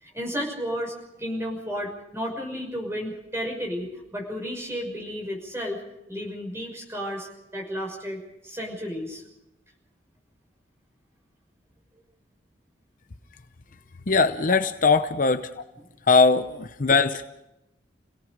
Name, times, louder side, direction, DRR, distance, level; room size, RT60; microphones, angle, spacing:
voice 1, 0.0-5.8 6.1-9.2 14.5-14.6 15.8-15.9, equal, 15° right, 1 dB, 6.1 m, -33 dB
voice 2, 14.1-15.5 16.1-17.3, left 4 dB, 45° left, 10 dB, 0.7 m, -20 dB
29.5 x 17.5 x 5.2 m, 0.92 s
head